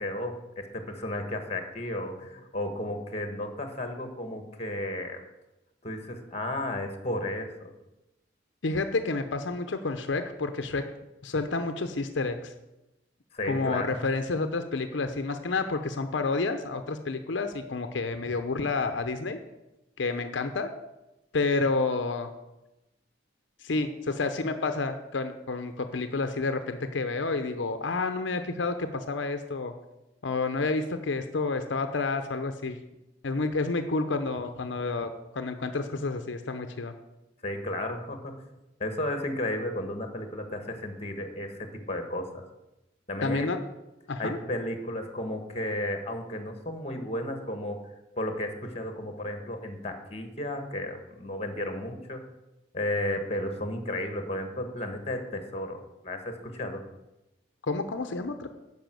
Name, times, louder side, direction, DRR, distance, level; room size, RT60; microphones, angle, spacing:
voice 1, 0.0-5.2 5.8-7.7 13.3-14.0 37.4-38.4 38.8-42.4 43.1-43.5 44.2-47.8 48.2-52.2 52.7-56.8, left 1 dB, 35° left, 6 dB, 1.4 m, -33 dB
voice 2, 8.6-10.8 11.2-12.5 13.5-19.4 20.0-20.7 21.3-22.3 23.6-29.7 30.2-32.8 33.2-36.9 43.2-43.6 44.1-44.4 57.7-58.5, left 3 dB, 75° left, 8 dB, 0.7 m, -29 dB
10.5 x 5.5 x 7.6 m, 0.97 s
head